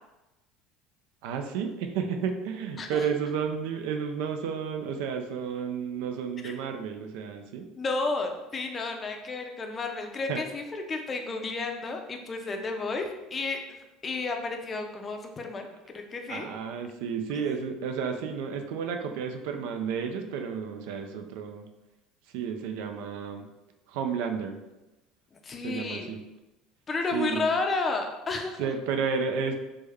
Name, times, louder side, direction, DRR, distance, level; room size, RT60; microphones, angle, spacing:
voice 1, 1.2-7.7 10.3-10.4 15.7-15.8 16.3-21.7 22.3-23.5 23.9-24.6 25.6-26.2 27.1-27.5 28.6-29.5, right 6 dB, 80° right, 5 dB, 0.4 m, -32 dB
voice 2, 7.8-16.5 25.4-26.1 26.9-28.7, left 3 dB, 25° left, 4 dB, 0.4 m, -32 dB
3.4 x 2.1 x 3.4 m, 1.0 s
cardioid pair, 135°, 0 cm